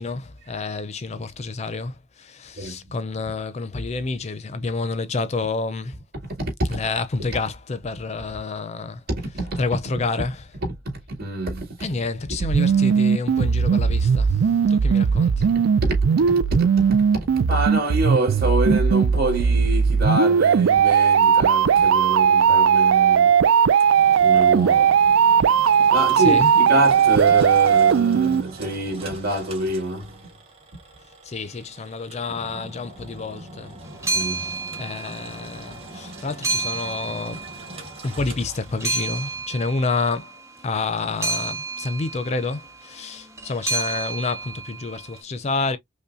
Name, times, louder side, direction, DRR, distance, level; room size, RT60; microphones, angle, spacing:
voice 1, 0.0-6.0 6.7-9.0 9.6-10.4 11.8-15.5 26.2-26.5 31.2-33.8 34.2-37.5 38.0-45.8, left 3 dB, 35° left, 0.4 m, -29 dB
voice 2, 6.4-6.8 9.1-9.6 10.6-11.8 15.4-23.4 24.2-25.2 25.9-30.3 34.1-34.5, right 1 dB, 50° right, 2.4 m, -26 dB
sound 1, 12.4-28.4, right 7 dB, 80° right, 0.4 m, -18 dB
Engine, 23.2-39.3, right 2 dB, 30° right, 1.2 m, -42 dB
sound 2, 33.8-35.6 35.9-38.2 38.5-45.0, right 3 dB, 15° right, 0.7 m, -30 dB
5.4 x 2.1 x 2.6 m
head